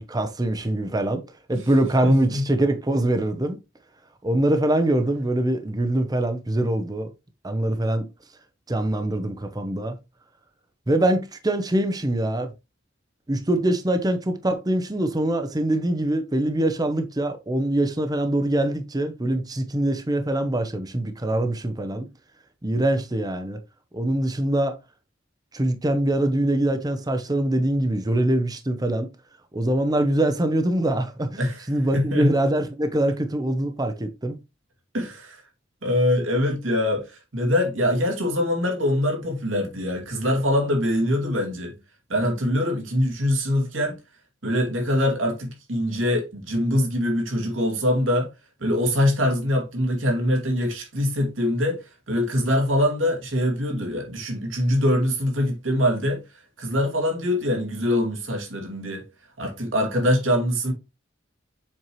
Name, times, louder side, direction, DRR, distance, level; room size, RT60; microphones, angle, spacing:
voice 1, 0.0-3.6 4.2-7.1 7.4-8.1 8.7-10.0 10.9-12.5 13.3-22.1 22.6-23.6 23.9-24.8 25.5-29.1 29.5-31.4 31.7-34.4, right 1 dB, 20° right, 0.7 m, -23 dB
voice 2, 2.0-2.4 31.4-31.6 31.9-32.3 34.9-35.4 35.8-41.7 42.1-44.0 44.4-48.3 48.6-51.8 52.1-56.2 56.6-59.0 59.4-60.7, left 1 dB, 85° right, 2.4 m, -23 dB
7.4 x 4.6 x 3.0 m
head